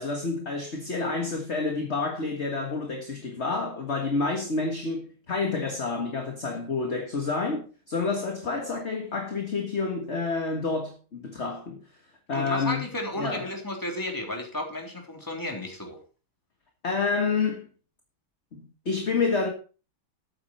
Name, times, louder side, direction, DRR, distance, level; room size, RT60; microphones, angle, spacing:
voice 1, 0.0-11.8 12.3-12.8 13.2-13.5 16.8-17.7 18.5-19.5, left 4 dB, 35° left, 1.7 m, -29 dB
voice 2, 12.3-16.0, left 1 dB, 10° left, 3.3 m, -33 dB
13.0 x 8.9 x 4.3 m
omnidirectional pair, 2.2 m